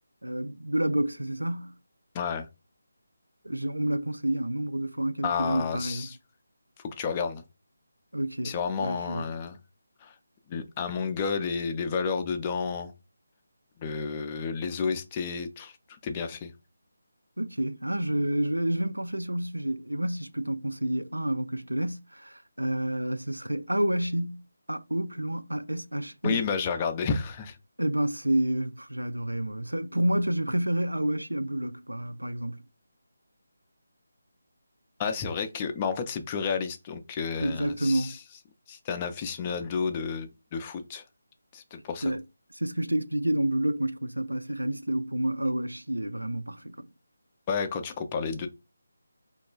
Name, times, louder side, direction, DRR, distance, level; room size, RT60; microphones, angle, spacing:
voice 1, 0.2-1.7 3.4-6.1 8.1-9.3 17.4-24.4 24.7-26.5 27.8-32.6 37.4-38.2 42.0-42.2 42.5-46.9, right 1 dB, 90° right, 0.3 m, -29 dB
voice 2, 2.1-2.5 5.2-6.2 6.8-7.4 8.4-9.6 10.0-10.1 10.5-12.9 13.8-15.7 16.0-16.5 26.2-27.6 35.0-38.2 38.7-41.0 41.5-42.1 47.5-48.5, left 5 dB, 20° left, 0.3 m, -31 dB
2.9 x 2.3 x 2.2 m
figure-of-eight pair, 155°, 0 cm